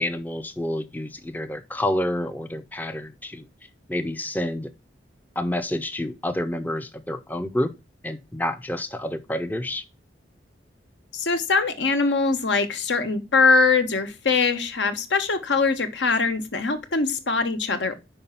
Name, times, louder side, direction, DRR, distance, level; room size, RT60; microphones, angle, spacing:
voice 1, 0.0-3.5 3.9-4.7 5.4-7.7 8.0-9.8, left 1 dB, 10° left, 0.5 m, -28 dB
voice 2, 11.1-18.0, left 4 dB, 80° left, 1.1 m, -22 dB
5.4 x 5.0 x 5.6 m
head